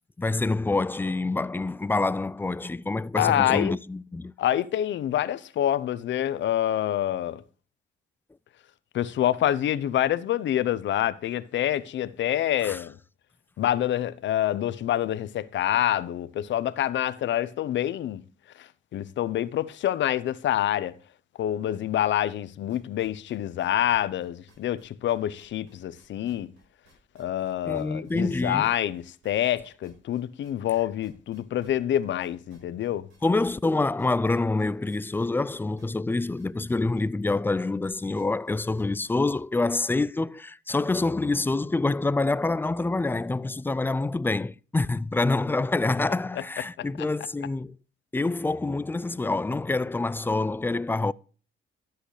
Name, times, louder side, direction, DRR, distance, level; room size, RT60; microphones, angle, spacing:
voice 1, 0.2-4.3 12.6-12.8 27.6-28.7 33.2-47.8 48.1-51.1, left 3 dB, 10° left, 0.3 m, -26 dB
voice 2, 3.2-3.7 4.4-7.4 8.9-12.9 13.6-18.2 18.6-20.9 21.4-26.5 27.1-33.1 46.8-46.9, left 12 dB, 70° left, 0.7 m, -26 dB
sound 1, 22.7-29.6 29.8-39.4, right 4 dB, 80° right, 5.8 m, -57 dB
12.0 x 7.9 x 3.2 m
cardioid pair, 90°, 20 cm